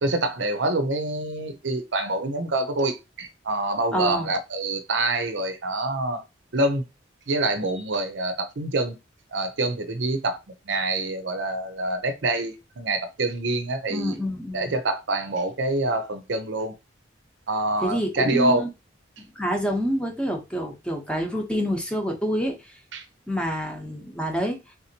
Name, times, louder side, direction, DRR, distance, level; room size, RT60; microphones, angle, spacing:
voice 1, 0.0-6.2 6.5-6.8 7.3-8.9 9.3-10.4 10.7-14.1 14.5-16.7 17.5-18.6 22.9-23.0, right 2 dB, 70° right, 0.6 m, -26 dB
voice 2, 3.9-4.3 13.9-14.7 17.8-18.7 19.4-22.6 23.3-24.6, equal, 5° left, 0.8 m, -27 dB
3.8 x 2.8 x 2.8 m
head